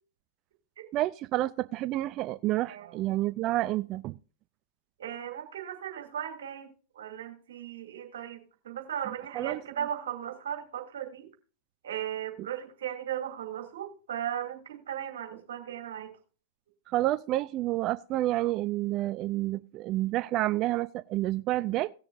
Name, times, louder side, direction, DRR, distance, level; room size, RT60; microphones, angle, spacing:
voice 1, 0.9-4.2 9.3-9.6 16.9-21.9, right 16 dB, 45° right, 0.4 m, -29 dB
voice 2, 2.7-3.0 5.0-6.7 6.9-8.4 8.6-11.3 11.8-16.1, right 10 dB, 75° right, 2.5 m, -37 dB
18.0 x 6.8 x 2.6 m
hypercardioid pair, 100°, 0 cm